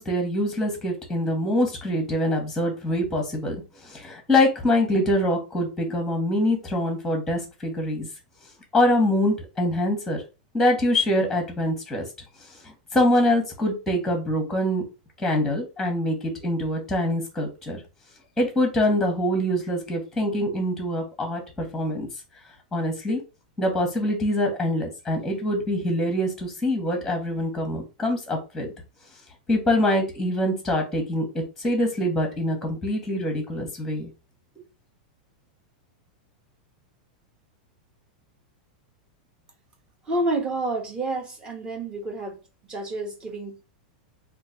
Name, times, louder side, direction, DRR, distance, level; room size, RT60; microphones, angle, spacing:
voice 1, 0.0-3.6 3.8-8.1 8.7-10.2 10.5-12.0 12.6-14.8 15.2-17.8 18.4-22.1 22.7-23.2 23.6-28.7 29.5-34.1, left 1 dB, 5° left, 1.0 m, -24 dB
voice 2, 40.0-43.6, right 2 dB, 20° right, 0.9 m, -29 dB
3.1 x 2.4 x 3.9 m
supercardioid pair, 145°, 4 cm